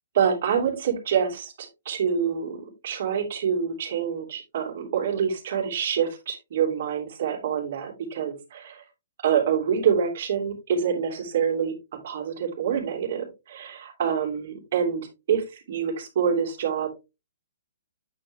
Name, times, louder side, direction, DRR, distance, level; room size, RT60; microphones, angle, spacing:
voice 1, 0.1-8.8 9.2-11.8 12.0-16.9, right 7 dB, 55° right, 2 dB, 2.8 m, -26 dB
8.7 x 4.5 x 3.3 m, 0.26 s
hypercardioid pair, 155°, 0 cm